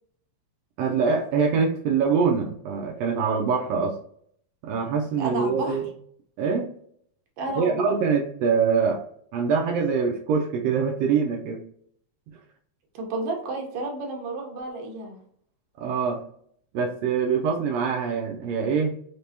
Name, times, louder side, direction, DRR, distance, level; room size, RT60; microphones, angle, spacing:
voice 1, 0.8-4.0 4.6-5.9 6.4-6.7 7.5-9.0 9.3-11.6 15.8-16.2 16.7-18.9, right 5 dB, 85° right, 0 dB, 1.5 m, -24 dB
voice 2, 5.2-5.8 7.4-7.8 12.9-15.2, right 2 dB, 65° right, 1 dB, 1.7 m, -31 dB
5.0 x 3.4 x 2.7 m, 0.64 s
omnidirectional pair, 3.5 m